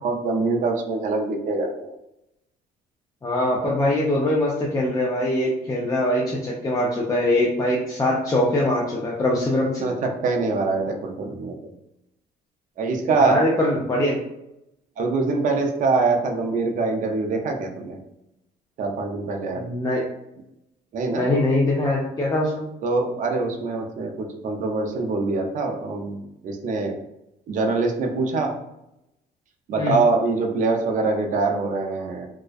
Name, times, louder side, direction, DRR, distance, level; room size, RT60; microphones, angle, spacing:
voice 1, 0.0-1.9 9.8-11.6 12.8-13.4 15.0-18.0 18.8-19.6 20.9-21.2 22.8-27.0 27.5-28.5 29.7-32.3, right 3 dB, 50° right, 2 dB, 0.4 m, -24 dB
voice 2, 3.2-9.9 13.1-14.2 19.6-20.0 21.1-22.6 29.8-30.0, left 1 dB, 20° left, -3 dB, 0.4 m, -22 dB
2.3 x 2.1 x 2.5 m, 0.86 s
cardioid pair, 110°, 17 cm